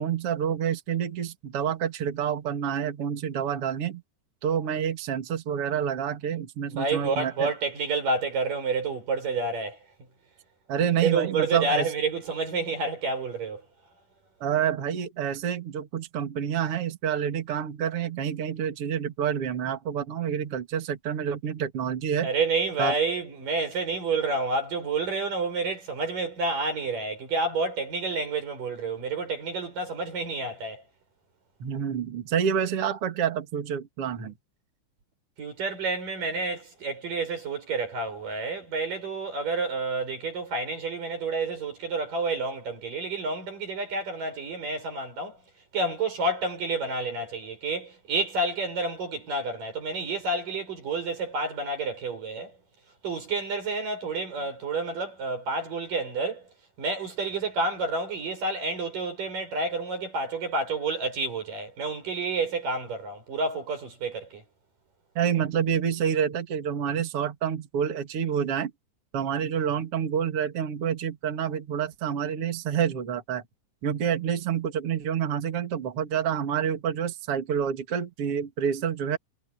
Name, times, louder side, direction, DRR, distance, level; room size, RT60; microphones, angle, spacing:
voice 1, 0.0-4.0 4.4-7.5 10.7-11.9 14.4-22.3 22.8-22.9 31.6-34.3 65.1-68.7 69.1-73.4 73.8-79.2, right 8 dB, 45° right, 3.0 m, -28 dB
voice 2, 6.7-9.8 11.0-13.6 22.2-30.8 35.4-45.4 45.7-52.6 53.0-56.5 56.8-64.4, right 3 dB, 90° right, 8.9 m, -29 dB
omnidirectional pair, 3.7 m